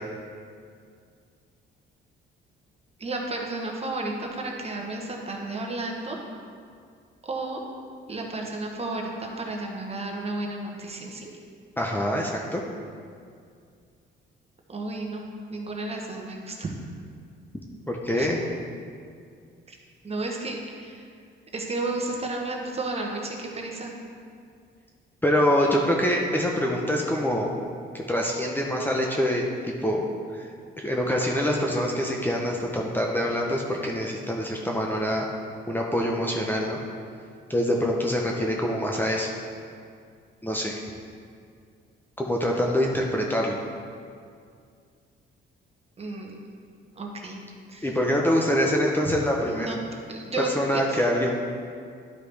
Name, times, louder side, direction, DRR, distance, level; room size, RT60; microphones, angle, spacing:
voice 1, 3.0-6.2 7.2-7.6 8.1-11.3 14.7-16.7 18.2-18.3 19.7-19.8 20.0-21.0 21.5-24.0 46.0-46.4 47.0-47.4 47.7-47.9 49.5-49.8 50.1-51.0, right 2 dB, 30° right, 0 dB, 1.2 m, -32 dB
voice 2, 11.8-12.6 17.9-18.4 25.2-27.5 27.9-30.0 30.3-30.5 30.8-35.3 35.7-36.8 37.5-39.3 40.4-40.8 42.2-43.6 47.8-49.7 50.6-51.4, equal, 10° left, -1 dB, 0.8 m, -25 dB
11.5 x 4.8 x 3.4 m, 2.2 s
cardioid pair, 90°, 20 cm